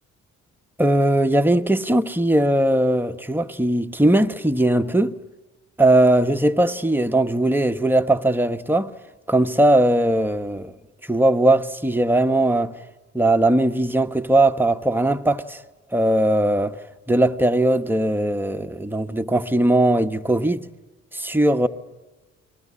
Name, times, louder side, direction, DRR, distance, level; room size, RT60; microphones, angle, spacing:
voice 1, 0.8-5.2 5.8-8.9 9.3-10.7 11.0-12.8 13.1-15.6 15.9-20.7 21.1-21.7, right 1 dB, 5° right, 1.1 m, -19 dB
29.5 x 21.0 x 8.5 m
cardioid pair, 90°, 30 cm